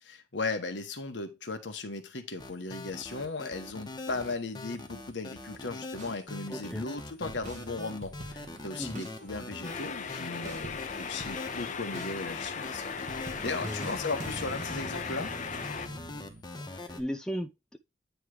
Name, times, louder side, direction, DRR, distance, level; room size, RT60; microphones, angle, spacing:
voice 1, 0.0-13.0 13.4-15.4, left 3 dB, 65° left, 1.3 m, -37 dB
sound 1, 2.4-17.0, left 2 dB, 25° left, 1.1 m, -42 dB
sound 2, 6.0-6.2 6.7-6.8 7.3-11.7 11.9-12.2 12.7-12.8 13.1-16.4, right 1 dB, 40° right, 1.3 m, -45 dB
voice 2, 6.5-6.9 8.8-9.1 13.6-13.9 16.7-17.8, equal, 5° left, 0.4 m, -36 dB
sound 3, 9.6-15.9, left 6 dB, 40° left, 0.7 m, -38 dB
9.2 x 3.2 x 4.8 m
head